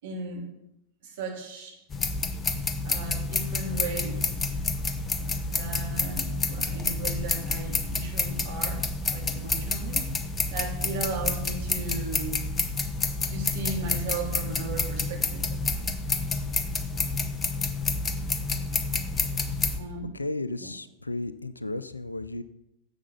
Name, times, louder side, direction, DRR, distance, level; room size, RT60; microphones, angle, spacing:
voice 1, 0.0-0.4 1.0-1.8 2.8-4.2 5.5-8.8 9.1-10.1 10.5-12.4 13.3-15.6 19.7-20.1 20.6-20.7, right 3 dB, 55° right, -1 dB, 3.0 m, -36 dB
sound 1, 1.9-19.8, left 3 dB, 20° left, 0.9 m, -29 dB
voice 2, 20.1-22.4, left 2 dB, 80° left, 15 dB, 0.5 m, -34 dB
10.0 x 7.7 x 5.7 m, 0.86 s
figure-of-eight pair, 90°, 0 cm